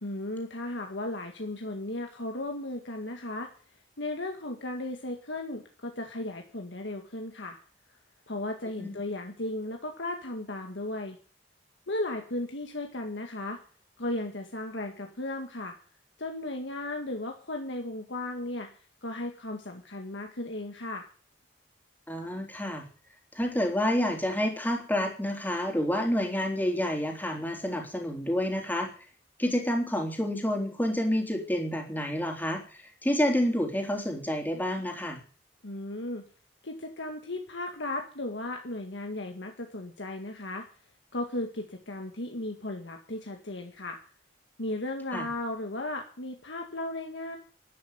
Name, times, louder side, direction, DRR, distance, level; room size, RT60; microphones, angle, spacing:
voice 1, 0.0-3.5 4.0-7.6 8.3-11.2 11.9-13.6 14.0-15.7 16.2-21.1 35.6-36.2 36.6-40.7 41.1-44.0 44.6-47.4, left 1 dB, 75° left, 3 dB, 1.8 m, -35 dB
voice 2, 22.1-22.8 23.3-28.9 29.4-35.2 45.1-45.3, left 1 dB, 10° left, 2 dB, 3.5 m, -29 dB
12.0 x 9.4 x 9.4 m, 0.41 s
head